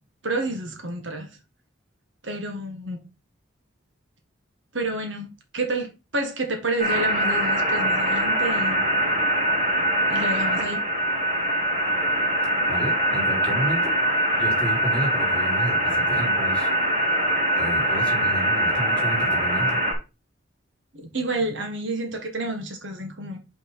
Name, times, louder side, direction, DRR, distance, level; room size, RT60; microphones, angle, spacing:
voice 1, 0.2-1.3 2.2-3.0 4.7-5.3 5.5-8.9 10.1-10.8 20.9-23.4, right 2 dB, 65° right, 1.7 m, -29 dB
sound 1, 6.8-19.9, equal, 40° right, 3.2 m, -23 dB
voice 2, 12.7-13.9 14.4-16.7 17.6-19.8, right 1 dB, 5° left, 2.9 m, -31 dB
5.7 x 4.5 x 5.7 m
head